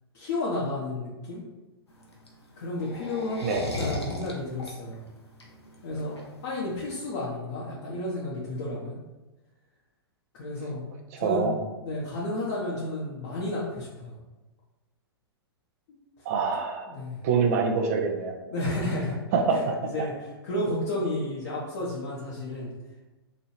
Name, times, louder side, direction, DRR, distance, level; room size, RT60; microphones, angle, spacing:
voice 1, 0.1-1.4 2.6-5.0 5.8-6.2 6.4-9.0 10.3-10.9 11.2-11.5 11.8-14.1 15.9-16.2 16.9-17.2 18.5-19.1 19.5-19.7 19.9-22.7, left 1 dB, 40° left, -6 dB, 0.7 m, -32 dB
sound 1, 1.9-7.1, left 1 dB, 80° left, 0.8 m, -37 dB
voice 2, 11.2-11.6 16.3-16.9 17.2-18.4 19.3-20.1, right 5 dB, 35° right, 4 dB, 0.4 m, -25 dB
3.0 x 2.6 x 4.2 m, 1.1 s
figure-of-eight pair, 110°, 14 cm